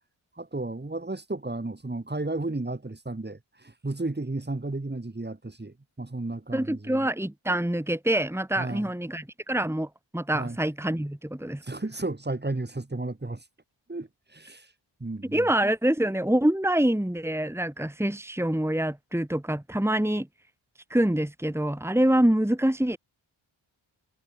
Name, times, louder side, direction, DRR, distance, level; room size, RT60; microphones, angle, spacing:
voice 1, 0.4-7.1 8.6-8.9 10.3-10.6 11.6-13.4 13.9-14.7 15.0-15.5, right 2 dB, 20° right, 3.8 m, -33 dB
voice 2, 6.5-11.6 15.3-20.3 20.9-23.0, right 1 dB, 5° right, 2.9 m, -25 dB
cardioid pair, 65°, 48 cm